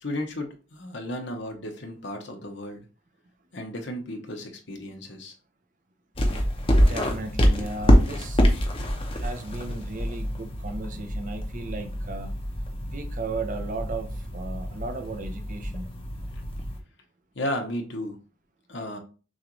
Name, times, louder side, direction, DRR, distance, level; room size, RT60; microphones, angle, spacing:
voice 1, 0.0-2.9 3.5-5.3 17.3-18.2 18.7-19.0, left 1 dB, 60° left, 1.0 m, -34 dB
sound 1, 6.2-16.8, equal, 30° left, 0.7 m, -25 dB
voice 2, 6.8-8.4 9.1-12.3 12.9-15.9, right 2 dB, 40° right, 0.6 m, -35 dB
6.3 x 2.5 x 3.0 m
head